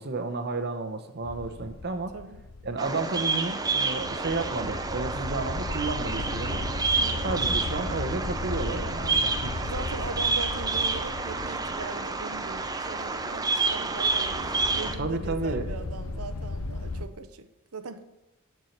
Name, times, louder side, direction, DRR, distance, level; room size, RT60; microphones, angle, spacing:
voice 1, 0.0-2.1 2.6-6.6 7.2-9.5 15.0-15.7, right 3 dB, 50° right, 7 dB, 0.9 m, -32 dB
sound 1, 1.2-17.1, left 3 dB, 85° left, 0.7 m, -37 dB
Bird vocalization bird call bird song, 2.8-14.9, right 4 dB, 15° right, 0.6 m, -29 dB
voice 2, 7.0-7.5 9.6-18.0, right 4 dB, 85° right, 10 dB, 0.8 m, -40 dB
11.5 x 4.6 x 6.6 m, 0.97 s
head